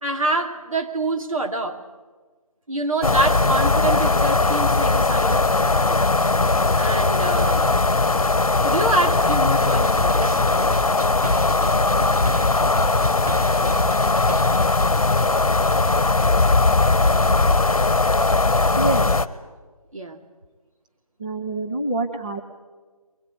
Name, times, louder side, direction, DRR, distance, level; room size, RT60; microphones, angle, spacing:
voice 1, 0.0-1.8 2.7-6.0 6.8-7.8 8.6-10.4 19.9-20.2, right 2 dB, 60° right, 3 dB, 2.6 m, -26 dB
sound 1, 3.0-19.3, left 3 dB, 65° left, 1.1 m, -19 dB
sound 2, 9.6-14.9, right 2 dB, 80° right, 2.0 m, -32 dB
voice 2, 21.2-22.4, right 2 dB, 15° right, 2 dB, 0.6 m, -26 dB
23.0 x 20.0 x 8.6 m, 1.3 s
figure-of-eight pair, 160°, 19 cm